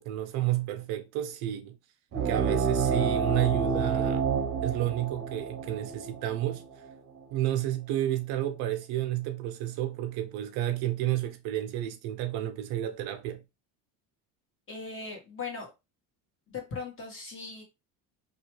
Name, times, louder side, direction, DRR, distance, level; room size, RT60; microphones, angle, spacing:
voice 1, 0.0-1.8 2.2-4.2 4.6-6.6 7.3-13.4, right 13 dB, 75° right, 0.6 m, -31 dB
sound 1, 2.1-7.2, right 6 dB, 35° right, 0.7 m, -29 dB
voice 2, 14.7-15.7 16.5-17.6, left 4 dB, 30° left, 1.4 m, -39 dB
2.9 x 2.3 x 3.0 m
cardioid pair, 110°, 39 cm